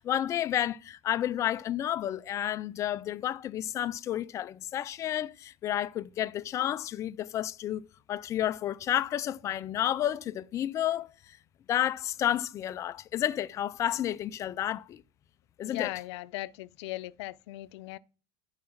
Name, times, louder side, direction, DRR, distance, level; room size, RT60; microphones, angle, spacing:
voice 1, 0.0-11.4 11.7-15.0 15.6-15.9, left 11 dB, 20° left, 0.3 m, -31 dB
voice 2, 15.6-18.0, left 17 dB, 75° left, 0.5 m, -38 dB
10.5 x 4.8 x 5.9 m
supercardioid pair, 165°, 15 cm